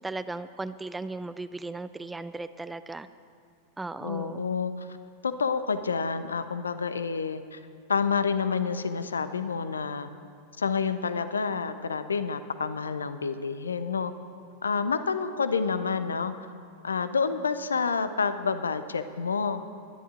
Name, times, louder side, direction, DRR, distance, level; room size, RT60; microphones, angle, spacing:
voice 1, 0.0-3.1 3.8-4.5, right 3 dB, 10° right, 14 dB, 0.3 m, -36 dB
voice 2, 4.0-4.9 5.2-7.6 7.9-10.1 10.6-14.1 14.6-16.3 16.8-19.6, left 5 dB, 75° left, 12 dB, 0.4 m, -28 dB
20.5 x 11.0 x 2.5 m, 2.2 s
figure-of-eight pair, 90°, 0 cm